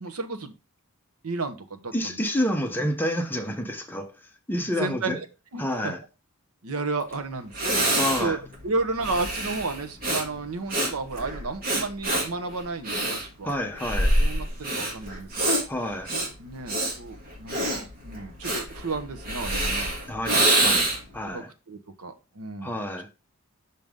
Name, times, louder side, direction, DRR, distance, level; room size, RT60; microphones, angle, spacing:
voice 1, 0.0-0.5 1.2-2.2 4.6-5.3 5.5-5.9 6.6-8.4 8.6-13.6 14.2-15.6 16.4-19.9 21.3-22.8, right 3 dB, 85° right, 1.0 m, -32 dB
voice 2, 1.9-4.1 4.5-5.2 5.6-6.0 8.0-8.4 13.4-14.2 15.7-16.1 20.1-21.5 22.6-23.1, equal, 10° left, 0.7 m, -29 dB
Breathing, 7.1-7.2 7.5-21.2, right 1 dB, 40° right, 1.7 m, -26 dB
5.9 x 5.3 x 3.6 m
head